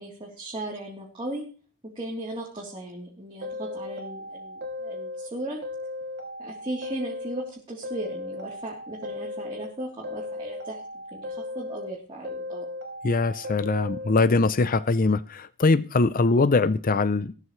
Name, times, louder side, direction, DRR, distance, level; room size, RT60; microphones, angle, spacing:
voice 1, 0.0-1.5 1.8-5.6 6.4-10.8 11.1-12.7, right 1 dB, 25° right, 3.4 m, -37 dB
sound 1, 3.4-5.3 5.6-7.5 7.8-9.7 10.0-11.9 12.2-14.1, left 2 dB, 55° right, 3.9 m, -36 dB
voice 2, 13.0-17.3, left 3 dB, 40° left, 0.6 m, -22 dB
17.5 x 14.0 x 3.3 m
head